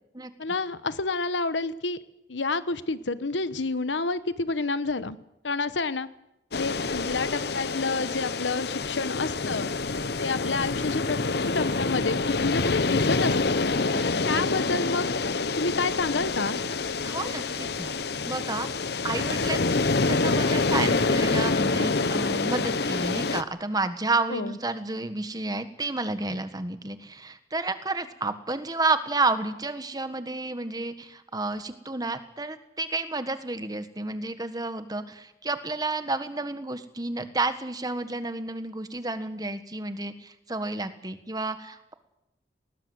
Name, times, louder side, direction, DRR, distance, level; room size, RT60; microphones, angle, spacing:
voice 1, 0.4-2.0 2.3-5.2 5.4-6.1 6.5-9.7 10.2-13.5 14.0-15.1 15.6-16.6 24.3-24.6, left 3 dB, 90° left, 14 dB, 1.1 m, -29 dB
sound 1, 6.5-23.4, left 3 dB, 60° left, 0.9 m, -26 dB
voice 2, 13.9-14.4 17.0-18.7 19.0-41.9, right 3 dB, 20° right, 10 dB, 1.5 m, -31 dB
20.5 x 19.0 x 8.0 m, 0.89 s
head